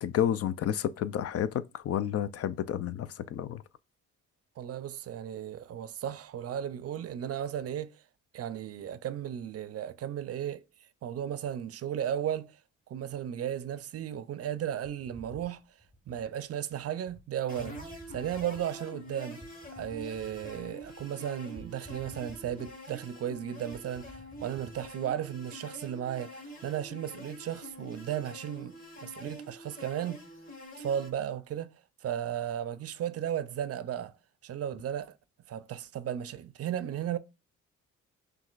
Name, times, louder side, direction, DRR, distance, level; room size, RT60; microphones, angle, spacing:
voice 1, 0.0-3.6, left 10 dB, 55° left, 0.4 m, -30 dB
voice 2, 4.6-8.0 8.3-10.6 11.0-12.6 12.9-15.6 16.1-17.8 18.1-19.4 19.7-28.7 29.0-30.2 30.8-31.8 32.0-34.1 34.4-35.2 35.5-37.2, right 10 dB, 55° right, 0.5 m, -35 dB
sound 1, 14.8-16.3 17.1-17.2 17.6-18.7 19.4-21.1 21.6-23.0 23.3-23.4 23.7-24.9, right 1 dB, 5° left, 1.1 m, -51 dB
sound 2, 17.5-31.1, equal, 30° left, 2.2 m, -46 dB
5.9 x 2.5 x 2.4 m
cardioid pair, 90°, 30 cm